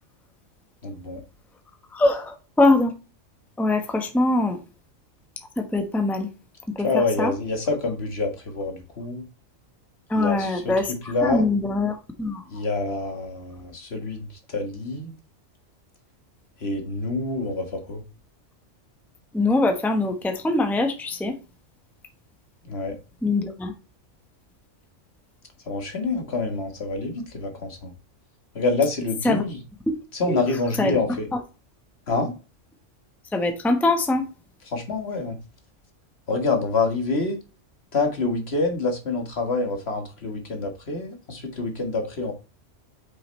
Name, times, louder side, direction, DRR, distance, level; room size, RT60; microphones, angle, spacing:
voice 1, 0.8-1.2 6.8-9.2 10.1-11.4 12.5-15.1 16.6-18.0 22.6-23.0 25.7-27.9 28.5-29.6 30.1-31.3 32.1-32.3 34.6-35.4 36.3-37.4 37.9-42.3, left 3 dB, 55° left, 1.8 m, -27 dB
voice 2, 1.9-2.9 3.6-4.6 5.6-6.3 6.8-6.9 7.2-7.3 10.1-12.4 19.3-21.4 23.2-23.7 29.2-29.4 29.9-30.0 30.3-30.4 30.8-31.0 33.3-34.2, left 2 dB, ahead, 1.0 m, -22 dB
8.7 x 6.4 x 3.2 m
omnidirectional pair, 1.3 m